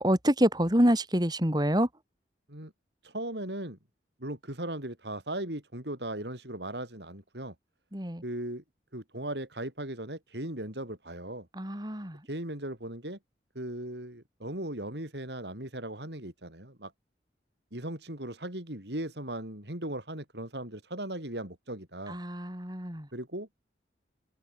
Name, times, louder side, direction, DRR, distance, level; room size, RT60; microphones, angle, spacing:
voice 1, 0.0-1.9 7.9-8.2 11.6-12.2 22.1-23.1, equal, 25° right, 7.7 m, -26 dB
voice 2, 3.0-3.8 4.2-7.5 8.2-8.6 8.9-11.5 12.3-13.2 13.5-16.9 17.7-22.2 23.1-23.6, right 1 dB, 70° right, 7.7 m, -38 dB
head